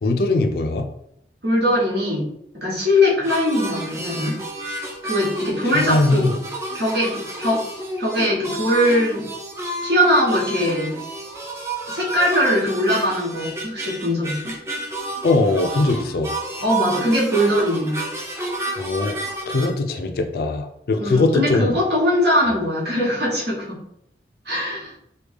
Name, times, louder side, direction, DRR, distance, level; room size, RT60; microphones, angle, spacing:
voice 1, 0.0-0.9 5.7-6.3 15.2-16.3 18.8-21.7, left 2 dB, 60° left, 6 dB, 0.4 m, -21 dB
voice 2, 1.4-2.3 2.5-4.4 5.0-6.3 6.7-7.6 8.0-9.3 9.8-11.0 11.9-14.6 16.6-18.0 20.9-23.8 24.4-24.9, equal, 75° right, -5 dB, 1.3 m, -21 dB
sound 1, 3.2-19.7, right 1 dB, 15° right, 0.5 m, -30 dB
3.3 x 2.2 x 3.3 m, 0.75 s
head